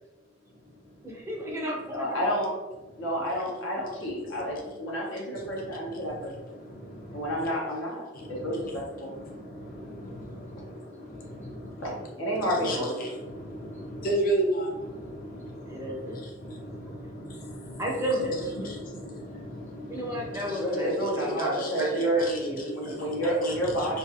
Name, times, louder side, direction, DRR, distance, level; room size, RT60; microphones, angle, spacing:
voice 1, 1.0-2.2 15.7-16.2 17.8-18.8 19.9-22.8, equal, 15° right, -2 dB, 0.5 m, -33 dB
voice 2, 1.9-2.5 3.0-6.3 7.1-8.0 8.3-9.1 11.8-13.0 20.4-22.2 22.7-24.0, equal, 80° left, -4 dB, 0.9 m, -29 dB
voice 3, 6.6-7.3 8.2-8.7 9.0-11.9 12.6-17.8 18.6-20.6 21.6-21.7 22.8-23.2 23.4-23.9, right 1 dB, 45° left, 0 dB, 0.6 m, -35 dB
2.5 x 2.5 x 2.6 m, 1.1 s
head